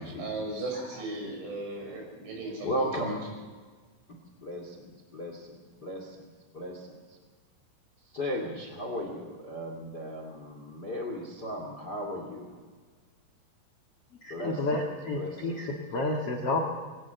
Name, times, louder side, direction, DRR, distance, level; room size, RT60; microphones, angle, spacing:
voice 1, 0.0-3.1, right 2 dB, 70° right, -1 dB, 9.1 m, -37 dB
voice 2, 0.5-0.8 2.6-3.2 4.4-5.5 5.8-6.1 6.5-6.8 8.1-12.5 14.3-14.8 15.2-15.6, equal, 35° left, 3 dB, 1.8 m, -35 dB
voice 3, 14.2-16.6, left 2 dB, 55° left, 1 dB, 1.7 m, -30 dB
22.0 x 17.5 x 6.9 m, 1.5 s
omnidirectional pair, 5.5 m